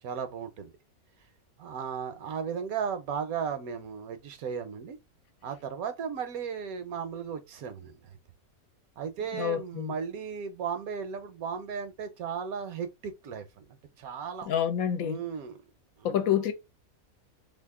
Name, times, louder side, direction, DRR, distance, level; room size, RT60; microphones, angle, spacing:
voice 1, 0.0-0.7 1.6-5.0 5.4-8.2 9.0-14.5 15.0-15.6 16.0-16.2, right 7 dB, 75° right, 1.1 m, -35 dB
voice 2, 9.3-9.9 14.4-15.2 16.0-16.5, left 9 dB, 75° left, 1.1 m, -28 dB
2.8 x 2.5 x 3.6 m
omnidirectional pair, 1.6 m